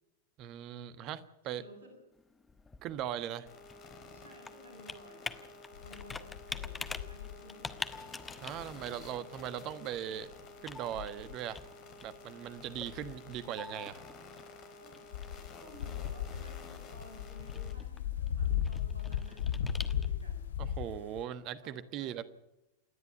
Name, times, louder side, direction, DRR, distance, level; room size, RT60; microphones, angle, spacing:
voice 1, 0.4-1.6 2.8-3.5 8.3-10.3 10.6-11.6 12.0-14.0 20.6-22.2, right 10 dB, 40° right, 14 dB, 1.3 m, -39 dB
voice 2, 1.4-2.0 4.1-5.5 5.7-7.9 14.8-15.0 15.6-20.5 21.6-22.2, equal, 70° right, 3 dB, 6.5 m, -55 dB
Computer keyboard, 2.1-20.4, left 4 dB, 15° left, 1.2 m, -48 dB
sound 1, 3.5-17.7, left 3 dB, 35° left, 3.8 m, -52 dB
sound 2, 5.7-8.0 8.4-9.2 10.3-10.5 10.9-11.5 12.7-13.5 15.1-21.2, left 9 dB, 65° left, 0.8 m, -37 dB
28.0 x 11.0 x 9.1 m, 0.91 s
figure-of-eight pair, 90°, 0 cm